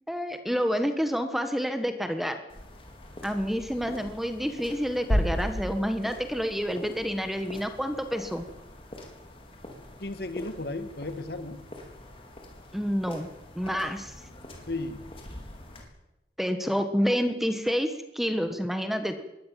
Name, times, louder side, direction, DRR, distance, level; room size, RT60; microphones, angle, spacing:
voice 1, 0.1-2.3 3.2-8.4 12.7-13.3 13.5-14.1 16.4-19.2, equal, ahead, 8 dB, 1.5 m, -28 dB
sound 1, 2.5-15.8, left 1 dB, 30° left, 4.2 m, -46 dB
sound 2, 5.1-6.9, equal, 90° left, 5.0 m, -29 dB
voice 2, 10.0-11.6 14.7-15.0, left 2 dB, 60° left, 10 dB, 2.0 m, -34 dB
22.0 x 18.5 x 7.6 m, 0.93 s
head